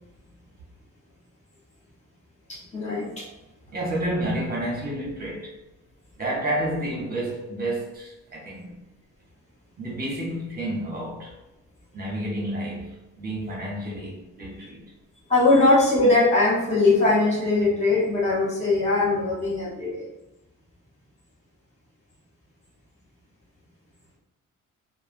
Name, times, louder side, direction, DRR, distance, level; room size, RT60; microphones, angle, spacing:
voice 1, 2.5-3.3 15.3-20.0, left 2 dB, 20° left, -7 dB, 1.0 m, -21 dB
voice 2, 3.7-5.5 6.2-8.8 9.8-11.3 11.9-14.8, right 1 dB, 30° right, -3 dB, 0.9 m, -30 dB
3.1 x 2.0 x 2.5 m, 0.96 s
cardioid pair, 130°, 33 cm